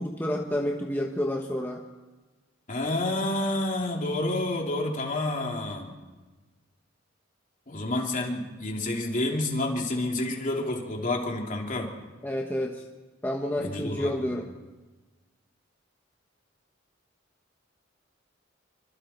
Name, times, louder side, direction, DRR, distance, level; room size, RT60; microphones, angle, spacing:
voice 1, 0.0-1.8 12.2-12.8 13.2-14.5, left 1 dB, 10° left, 1 dB, 1.1 m, -29 dB
voice 2, 2.7-5.9 7.7-11.9 13.6-14.3, left 2 dB, 40° left, 0 dB, 3.2 m, -29 dB
27.0 x 24.5 x 4.5 m, 1.2 s
head